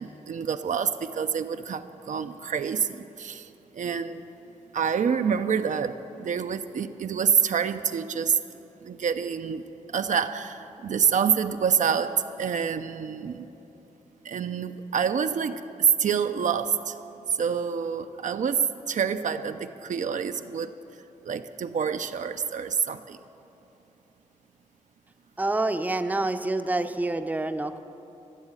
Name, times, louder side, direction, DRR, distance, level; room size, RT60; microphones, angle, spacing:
voice 1, 0.0-4.2 4.7-8.4 8.8-9.6 9.9-13.5 14.2-16.9 17.3-20.8 21.2-23.2, right 7 dB, 75° right, 9 dB, 0.5 m, -27 dB
voice 2, 25.4-27.8, right 2 dB, 10° right, 8 dB, 0.6 m, -27 dB
14.5 x 7.2 x 9.0 m, 2.9 s
wide cardioid pair, 100°, 13 cm